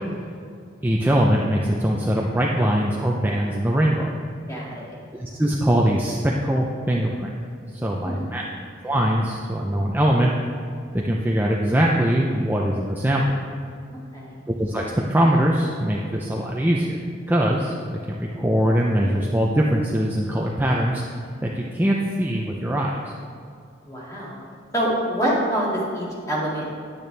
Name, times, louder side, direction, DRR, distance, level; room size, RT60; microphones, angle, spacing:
voice 1, 0.8-4.1 5.2-7.3 7.8-8.4 8.8-10.3 10.9-13.2 14.6-17.0 17.3-21.0 21.4-22.9, right 1 dB, 10° right, -2 dB, 0.5 m, -22 dB
voice 2, 4.5-5.0 7.9-8.3 14.1-14.4 23.9-24.4 24.7-26.7, equal, 15° left, -6 dB, 2.1 m, -26 dB
10.5 x 9.2 x 3.3 m, 2.3 s
head